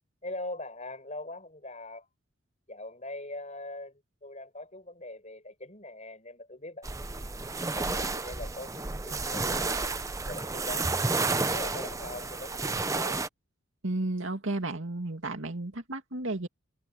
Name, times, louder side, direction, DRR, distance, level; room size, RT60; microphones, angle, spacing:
voice 1, 0.2-2.1 2.7-9.9 10.2-11.0 11.4-13.2, left 2 dB, 35° left, 7.7 m, -42 dB
sound 1, 6.8-13.3, right 3 dB, 15° right, 0.6 m, -31 dB
voice 2, 13.8-16.5, right 2 dB, 65° right, 2.6 m, -33 dB
head